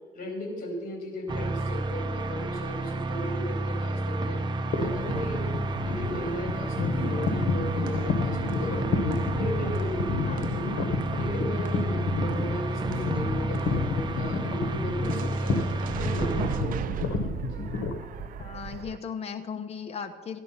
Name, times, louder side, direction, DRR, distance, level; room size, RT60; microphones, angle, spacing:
voice 1, 0.1-4.4 4.8-5.4 5.8-10.7 11.1-17.0 17.4-17.6, left 1 dB, 55° left, 3 dB, 4.3 m, -36 dB
sound 1, 1.3-16.9, right 2 dB, 25° right, 1.0 m, -31 dB
sound 2, 4.7-18.8, left 4 dB, 80° left, 1.4 m, -31 dB
sound 3, 7.1-14.0 15.0-19.0, right 10 dB, 55° right, 0.5 m, -39 dB
voice 2, 18.4-20.4, left 6 dB, 40° left, 7 dB, 1.1 m, -37 dB
14.0 x 10.5 x 5.7 m, 1.4 s
cardioid pair, 110°, 17 cm